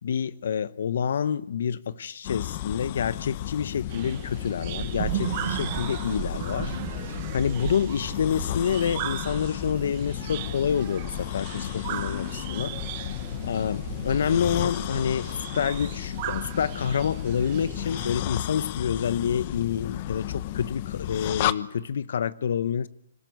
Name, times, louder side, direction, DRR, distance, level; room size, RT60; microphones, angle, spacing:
voice 1, 0.0-13.1 13.4-22.9, left 7 dB, 65° left, 16 dB, 0.8 m, -28 dB
sound 1, 2.2-21.5, left 14 dB, 40° left, 1.0 m, -33 dB
sound 2, 3.9-18.2, right 16 dB, 40° right, 0.9 m, -36 dB
25.5 x 13.5 x 9.4 m, 0.79 s
hypercardioid pair, 135°, 0 cm